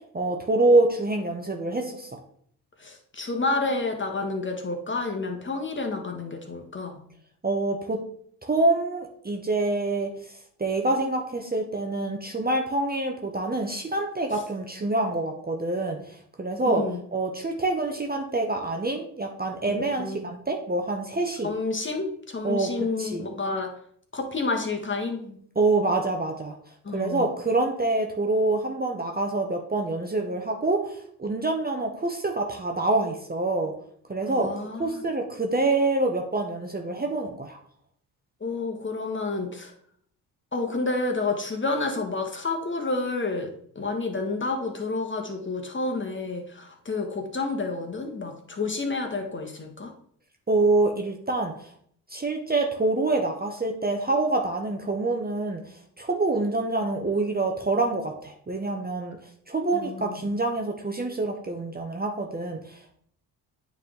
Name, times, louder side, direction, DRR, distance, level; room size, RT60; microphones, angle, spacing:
voice 1, 0.1-2.2 7.4-8.0 8.4-10.1 10.6-16.8 17.1-21.5 22.4-23.2 25.6-26.6 26.9-33.7 34.1-34.5 34.8-37.6 50.5-51.5 52.1-55.6 56.0-59.2 59.5-63.0, right 2 dB, 20° right, 2 dB, 1.0 m, -26 dB
voice 2, 2.8-7.0 14.3-14.4 16.6-17.0 19.8-20.2 21.4-23.7 24.1-25.4 26.8-27.3 34.3-35.0 38.4-39.7 40.5-49.9 59.7-60.2, left 3 dB, 25° left, 3 dB, 1.5 m, -30 dB
9.1 x 3.6 x 3.7 m, 0.63 s
hypercardioid pair, 50°, 49 cm